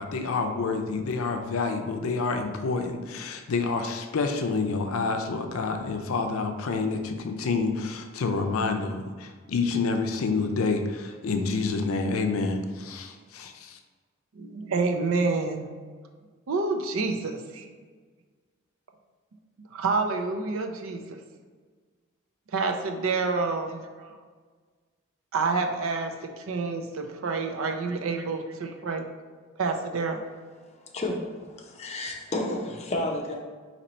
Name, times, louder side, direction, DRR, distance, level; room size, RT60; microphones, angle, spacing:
voice 1, 0.0-13.8, left 4 dB, 80° left, 5 dB, 0.5 m, -28 dB
voice 2, 14.3-15.7 16.5-17.7 19.7-21.2 22.5-24.2 25.3-29.1 29.6-30.2, right 4 dB, 70° right, 5 dB, 0.5 m, -28 dB
voice 3, 30.8-33.3, left 1 dB, 30° left, 0 dB, 0.6 m, -31 dB
4.3 x 2.9 x 4.0 m, 1.5 s
head